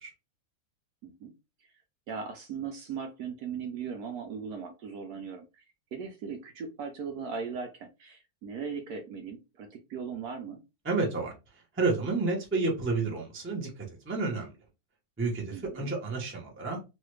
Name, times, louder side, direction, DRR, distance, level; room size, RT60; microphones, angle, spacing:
voice 1, 1.0-1.3 2.1-5.6 5.9-10.6 15.5-15.9, right 6 dB, 70° right, 5 dB, 1.0 m, -38 dB
voice 2, 10.8-11.3 11.8-14.5 15.2-16.8, right 3 dB, 15° right, -1 dB, 0.4 m, -30 dB
3.2 x 2.3 x 3.1 m, 0.27 s
omnidirectional pair, 2.0 m